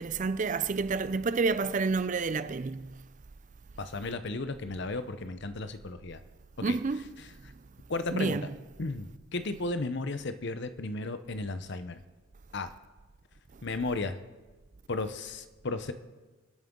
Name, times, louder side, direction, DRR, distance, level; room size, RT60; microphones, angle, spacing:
voice 1, 0.0-2.9 6.6-7.0 8.1-8.5, right 4 dB, 35° right, 0.4 m, -29 dB
voice 2, 3.8-6.2 6.7-6.8 7.9-8.4 8.8-12.0 12.5-12.7 13.6-14.2 14.9-15.9, left 3 dB, 55° left, 0.8 m, -34 dB
25.5 x 9.1 x 3.8 m
head